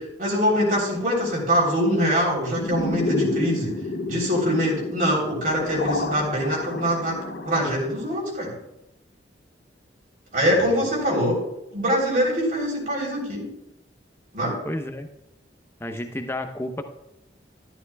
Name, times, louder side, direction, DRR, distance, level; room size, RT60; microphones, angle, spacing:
voice 1, 0.0-3.7 4.0-7.2 7.5-8.5 10.3-11.4 11.7-13.5 14.3-14.6, equal, 50° right, -2 dB, 3.4 m, -23 dB
sound 1, 2.5-7.7, left 2 dB, 70° left, 0.8 m, -30 dB
voice 2, 14.6-15.1 15.8-16.8, left 1 dB, 15° left, 7 dB, 0.7 m, -31 dB
13.0 x 12.0 x 2.3 m, 0.86 s
head